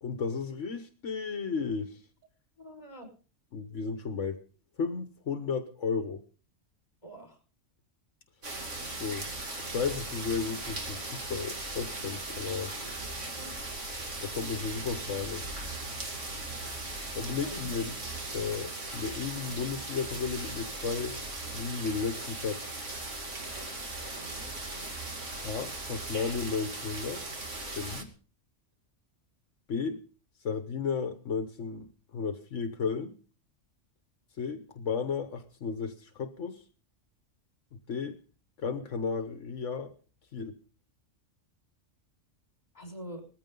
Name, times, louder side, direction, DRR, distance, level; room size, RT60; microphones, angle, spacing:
voice 1, 0.0-2.0 3.5-4.4 4.8-6.2 8.9-9.3 9.6-12.7 14.2-15.4 17.1-18.0 18.3-21.2 21.5-22.8 25.4-27.3 27.7-28.1 29.7-30.0 30.4-31.9 32.1-33.1 34.4-36.6 37.7-38.2 38.6-39.9 40.3-40.6, left 5 dB, 80° left, 7 dB, 1.5 m, -34 dB
voice 2, 2.6-3.1 7.0-7.4 13.3-13.5 17.4-17.7 42.7-43.2, right 1 dB, 35° left, 4 dB, 5.8 m, -44 dB
sound 1, 8.4-28.0, right 2 dB, 80° right, 2.9 m, -38 dB
20.5 x 15.0 x 3.9 m, 0.39 s
omnidirectional pair, 1.3 m